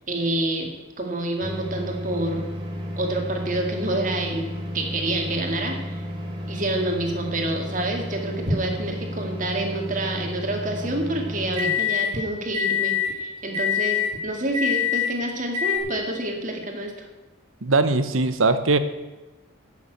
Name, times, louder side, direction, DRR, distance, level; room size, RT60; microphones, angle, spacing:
voice 1, 0.1-0.7 1.0-2.5 3.0-4.5 4.7-6.0 6.5-16.9, right 1 dB, 40° right, 2 dB, 2.1 m, -27 dB
sound 1, 1.4-12.1 12.5-13.1 13.5-14.1 14.5-15.1 15.5-15.8, left 5 dB, 25° right, 2.2 m, -29 dB
voice 2, 17.6-18.8, right 3 dB, 90° right, 11 dB, 1.0 m, -20 dB
11.0 x 7.2 x 8.0 m, 1.1 s
head